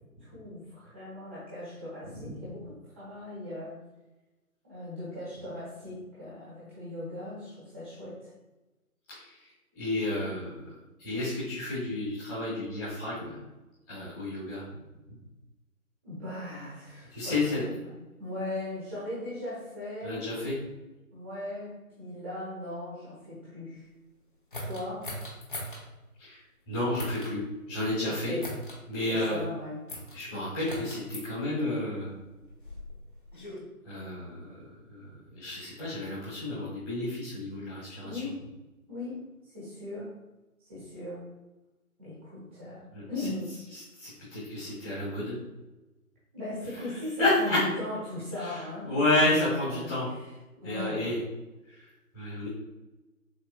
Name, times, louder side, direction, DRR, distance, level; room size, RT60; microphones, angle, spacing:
voice 1, 0.2-3.8 4.6-8.3 16.0-17.9 18.2-20.3 21.1-23.9 24.6-25.1 28.0-28.4 29.1-29.8 38.0-38.5 38.9-40.1 40.6-41.3 42.0-43.5 46.3-48.9 49.2-50.3 50.6-51.1, left 1 dB, 10° right, -10 dB, 1.0 m, -38 dB
voice 2, 9.1-9.5 9.7-10.6 11.0-13.4 13.9-14.6 17.1-17.6 20.0-20.5 26.2-26.4 26.7-28.4 28.9-29.4 30.1-32.1 33.8-38.2 42.9-43.3 43.7-45.4 47.2-47.6 48.4-50.1 50.6-51.2 51.7-51.9 52.1-52.5, left 2 dB, 10° left, -13 dB, 1.5 m, -31 dB
sound 1, 24.5-25.8 26.9-27.3 28.4-28.8 29.9-30.2 30.7-31.3 32.2-33.6, equal, 35° left, 0.9 m, -40 dB
6.6 x 3.6 x 2.3 m, 1.1 s
figure-of-eight pair, 155°, 45 cm